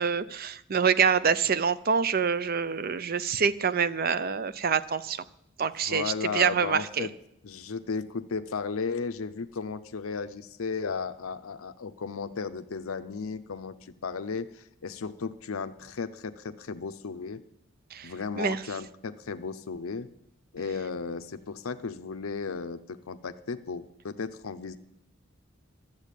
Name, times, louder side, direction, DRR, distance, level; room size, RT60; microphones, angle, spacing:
voice 1, 0.0-5.2 5.6-7.1 17.9-18.6, right 6 dB, 45° right, 15 dB, 0.5 m, -26 dB
voice 2, 5.8-7.1 7.4-17.4 18.0-20.1 20.5-24.8, left 5 dB, 90° left, 10 dB, 0.6 m, -35 dB
12.0 x 8.2 x 8.3 m, 0.77 s
head